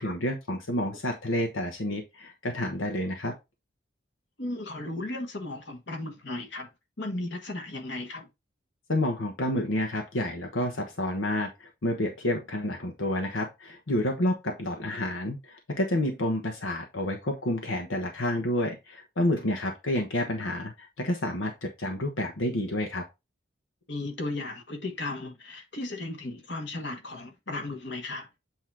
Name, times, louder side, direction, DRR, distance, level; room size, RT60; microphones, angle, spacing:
voice 1, 0.0-3.3 8.9-23.0, left 1 dB, 90° left, 1.1 m, -29 dB
voice 2, 4.4-6.7 7.0-8.3 23.9-28.3, left 2 dB, 65° left, 1.7 m, -35 dB
8.1 x 3.0 x 4.7 m
head